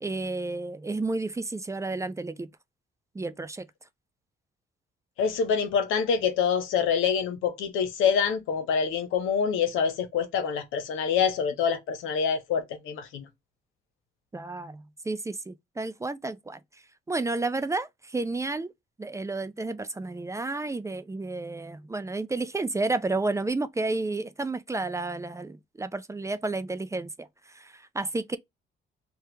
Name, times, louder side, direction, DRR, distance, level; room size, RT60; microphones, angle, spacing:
voice 1, 0.0-2.5 3.1-3.7 14.3-16.6 17.1-18.7 19.0-27.3 27.5-28.4, right 3 dB, 15° right, 0.4 m, -31 dB
voice 2, 5.2-13.3, left 6 dB, 90° left, 0.7 m, -26 dB
2.9 x 2.2 x 3.2 m
cardioid pair, 90°, 20 cm